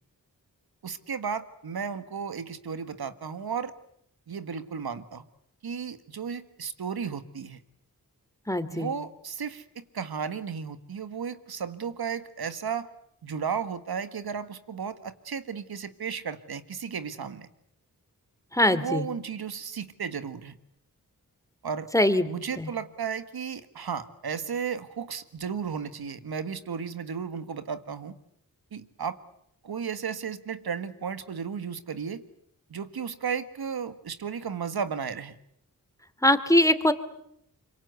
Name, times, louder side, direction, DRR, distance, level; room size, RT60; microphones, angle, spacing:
voice 1, 0.8-3.7 4.3-5.3 5.6-7.6 8.7-12.9 13.2-17.5 18.7-20.6 21.6-21.9 22.2-28.2 28.7-29.2 29.6-32.2 32.7-35.4, right 6 dB, 85° right, 12 dB, 1.7 m, -34 dB
voice 2, 8.5-8.9 18.5-19.1 21.9-22.3 22.6-22.7 36.2-36.9, left 1 dB, 10° left, 12 dB, 2.8 m, -22 dB
26.0 x 24.0 x 8.1 m, 0.73 s
cardioid pair, 45°, 37 cm